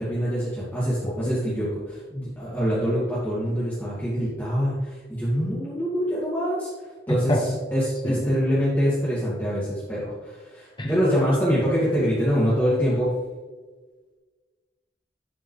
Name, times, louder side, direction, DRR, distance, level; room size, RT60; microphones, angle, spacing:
voice 1, 0.0-6.7 7.1-13.1, equal, 10° left, -11 dB, 2.4 m, -25 dB
voice 2, 1.1-1.5 7.1-7.4 8.0-8.3 10.8-10.9, equal, 25° left, 2 dB, 1.1 m, -27 dB
12.0 x 5.7 x 3.3 m, 1.4 s
head